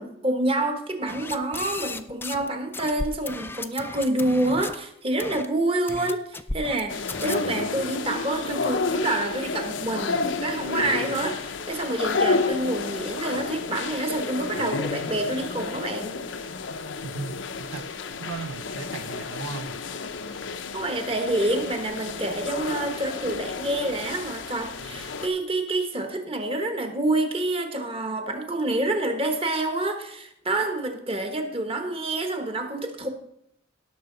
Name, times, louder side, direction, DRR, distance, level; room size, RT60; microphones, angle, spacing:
voice 1, 0.0-16.1 20.7-33.1, right 2 dB, 30° right, 1.2 m, -27 dB
sound 1, 1.1-2.5 2.7-4.8 5.2-5.5 5.9-6.8 7.1-7.4, left 3 dB, 10° left, 0.4 m, -34 dB
sound 2, 6.9-25.3, left 4 dB, 70° left, 0.6 m, -31 dB
voice 2, 17.0-17.9 18.2-19.8, right 4 dB, 85° right, 0.6 m, -36 dB
17.5 x 6.3 x 3.9 m
head